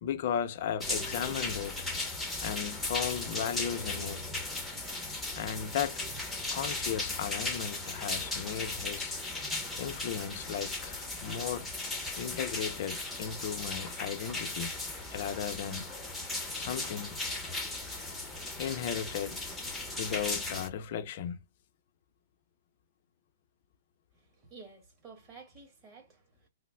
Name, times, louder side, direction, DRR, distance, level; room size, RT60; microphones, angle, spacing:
voice 1, 0.0-1.8 2.4-4.3 5.3-6.0 6.5-9.1 9.8-11.7 12.2-14.7 15.1-15.9 16.5-17.2 18.6-19.4 19.9-21.4, left 9 dB, 50° left, 0.5 m, -35 dB
sound 1, 0.8-20.7, left 2 dB, 5° left, 0.7 m, -37 dB
voice 2, 24.1-26.5, right 4 dB, 25° right, 1.5 m, -52 dB
3.1 x 2.0 x 3.4 m
hypercardioid pair, 140°, 0 cm